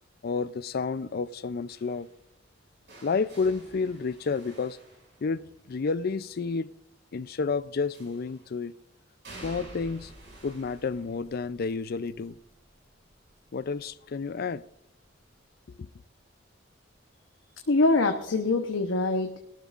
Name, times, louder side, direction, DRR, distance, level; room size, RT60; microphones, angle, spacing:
voice 1, 0.2-2.1 3.0-4.8 5.2-6.7 7.1-8.7 9.4-10.1 10.4-12.4 13.5-14.6 15.8-15.9, left 4 dB, 50° left, 0.4 m, -30 dB
sound 1, 1.7-5.7 7.9-8.5 9.2-15.1 15.4-15.8 17.1-17.2, right 1 dB, 65° right, 6.2 m, -51 dB
voice 2, 17.7-19.4, left 2 dB, 85° left, 0.9 m, -24 dB
20.5 x 12.5 x 2.5 m
head